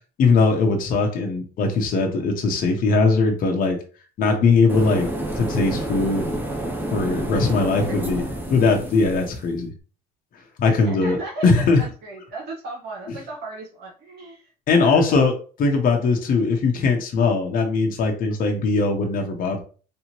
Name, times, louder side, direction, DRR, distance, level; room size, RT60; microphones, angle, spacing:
voice 1, 0.2-3.8 4.2-6.3 6.9-8.2 8.5-9.7 10.6-11.2 11.4-11.8 14.7-15.3 15.6-19.6, left 4 dB, 55° left, 2 dB, 0.8 m, -20 dB
sound 1, 4.7-9.5, right 1 dB, 10° right, 0.8 m, -29 dB
voice 2, 7.6-8.3 10.6-14.5 14.8-15.2, right 3 dB, 70° right, -2 dB, 1.2 m, -36 dB
3.4 x 2.9 x 2.9 m, 0.38 s
cardioid pair, 110°, 17 cm